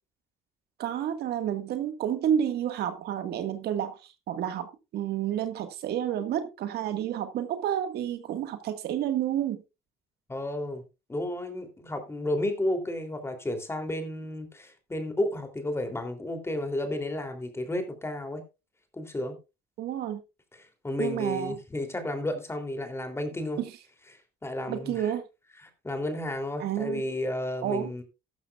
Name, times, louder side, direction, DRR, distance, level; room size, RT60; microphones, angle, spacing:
voice 1, 0.8-9.6 19.8-20.2 21.0-21.6 23.6-23.7 24.7-25.2 26.6-27.0 27.6-27.9, right 10 dB, 70° right, 1.9 m, -30 dB
voice 2, 10.3-10.8 11.1-18.4 18.9-19.4 20.8-23.6 24.4-24.9 25.8-28.0, left 1 dB, 15° left, 3.2 m, -32 dB
14.0 x 12.5 x 2.5 m
cardioid pair, 110°, 17 cm